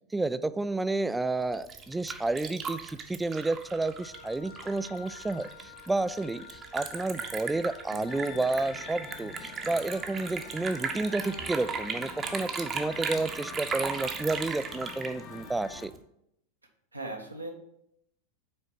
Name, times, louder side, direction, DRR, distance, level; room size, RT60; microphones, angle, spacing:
voice 1, 0.1-15.9, right 2 dB, 10° right, 14 dB, 0.3 m, -31 dB
Liquid, 1.4-16.0, right 5 dB, 25° right, 0.8 m, -37 dB
Wind instrument woodwind instrument, 4.0-12.8, left 4 dB, 65° left, 1.5 m, -51 dB
sound 1, 8.1-15.9, left 6 dB, 35° left, 0.9 m, -46 dB
voice 2, 16.9-17.5, right 2 dB, 85° right, 1 dB, 1.2 m, -38 dB
5.7 x 4.4 x 6.1 m, 0.78 s
figure-of-eight pair, 90°, 0 cm